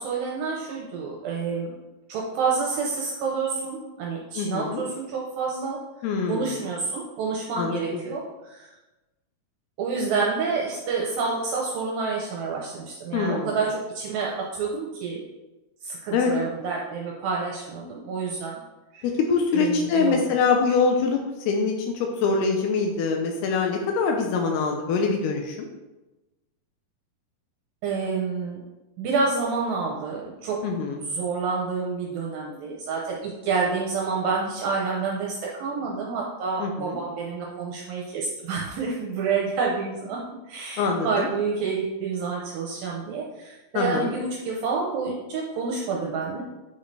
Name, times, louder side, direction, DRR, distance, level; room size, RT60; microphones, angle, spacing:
voice 1, 0.0-1.7 2.1-5.8 6.3-8.7 9.8-15.2 15.8-18.6 18.9-19.1 19.5-20.2 27.8-28.6 29.0-30.6 31.0-40.2 40.5-46.4, right 4 dB, 75° right, -2 dB, 2.4 m, -28 dB
voice 2, 4.4-4.8 6.0-6.5 7.6-8.0 13.1-13.6 16.1-16.3 19.0-21.2 21.5-25.7 30.6-31.0 36.6-37.0 40.8-41.3 43.7-44.1, left 4 dB, 85° left, 2 dB, 2.7 m, -24 dB
9.0 x 5.6 x 3.3 m, 1.1 s
omnidirectional pair, 4.5 m